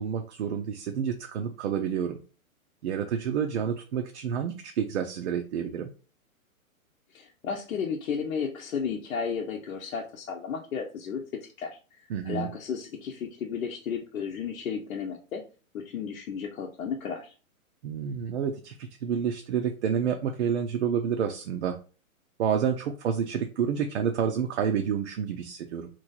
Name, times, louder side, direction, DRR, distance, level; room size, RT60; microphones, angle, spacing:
voice 1, 0.0-2.2 2.8-5.9 12.1-12.5 17.8-21.8 22.4-25.9, right 8 dB, 55° right, 4 dB, 0.6 m, -29 dB
voice 2, 7.1-11.2 11.6-15.4 15.7-17.3, left 6 dB, 70° left, 0 dB, 0.8 m, -33 dB
3.1 x 2.6 x 3.9 m, 0.36 s
hypercardioid pair, 150°, 42 cm